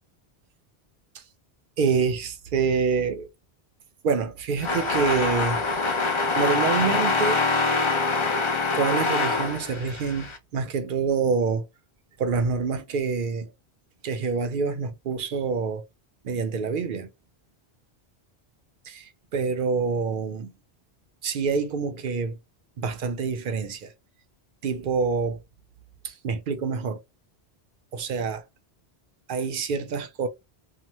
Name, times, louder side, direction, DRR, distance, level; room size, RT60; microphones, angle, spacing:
voice 1, 1.8-3.3 4.0-5.6 6.4-7.4 8.7-11.7 12.2-13.5 14.0-15.8 16.2-17.1 18.9-20.5 21.2-22.4 22.8-23.9 24.6-25.4 26.0-27.0 27.9-28.4 29.3-30.3, right 5 dB, 60° right, 0.7 m, -26 dB
sound 1, 4.6-10.4, left 3 dB, 40° left, 0.4 m, -24 dB
2.8 x 2.1 x 2.9 m
omnidirectional pair, 1.1 m